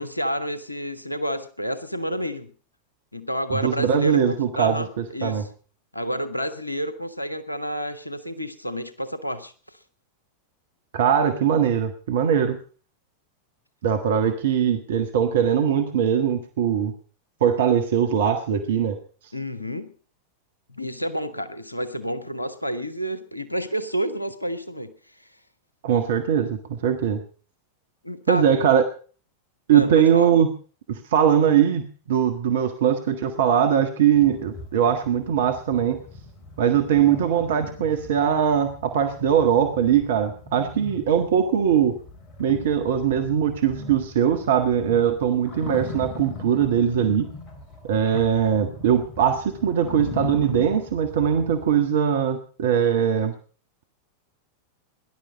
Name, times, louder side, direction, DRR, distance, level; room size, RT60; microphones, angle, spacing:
voice 1, 0.0-2.5 3.1-5.5 5.9-9.8 19.3-19.9 20.7-25.3 28.0-28.7 29.7-30.3, equal, 85° left, 12 dB, 1.4 m, -30 dB
voice 2, 3.5-5.4 10.9-12.6 13.8-16.9 17.4-19.0 25.8-27.2 28.3-28.8 29.7-30.5 30.9-36.0 36.6-42.0 42.4-47.3 47.8-53.3, right 8 dB, 60° right, 7 dB, 1.6 m, -21 dB
sound 1, 34.1-51.8, left 3 dB, 35° left, 3.9 m, -40 dB
19.0 x 11.5 x 5.3 m, 0.40 s
figure-of-eight pair, 90°, 0 cm